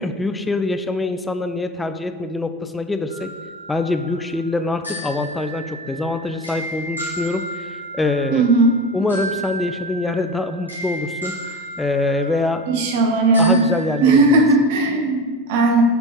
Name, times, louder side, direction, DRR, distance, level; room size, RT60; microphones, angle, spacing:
voice 1, 0.0-3.3 3.7-8.5 8.9-11.4 11.8-12.6 13.4-14.4, left 2 dB, 10° left, 8 dB, 0.6 m, -24 dB
sound 1, 3.1-14.3, right 1 dB, 90° left, 2.0 m, -34 dB
voice 2, 8.3-8.8 12.7-13.6 14.0-15.8, right 3 dB, 50° right, 3 dB, 1.4 m, -16 dB
9.8 x 4.4 x 5.6 m, 1.5 s
figure-of-eight pair, 90°, 0 cm